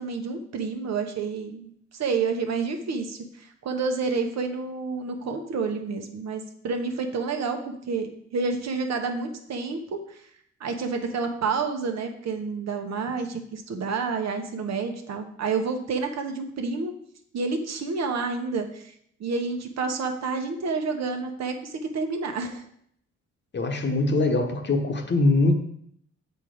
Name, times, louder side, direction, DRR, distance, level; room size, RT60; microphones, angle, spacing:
voice 1, 0.0-10.0 10.6-16.9 17.3-18.9 19.2-22.6, right 4 dB, 60° right, 5 dB, 1.1 m, -29 dB
voice 2, 23.5-25.5, left 2 dB, 35° left, 5 dB, 1.1 m, -22 dB
7.1 x 4.5 x 4.9 m, 0.68 s
cardioid pair, 90°, 30 cm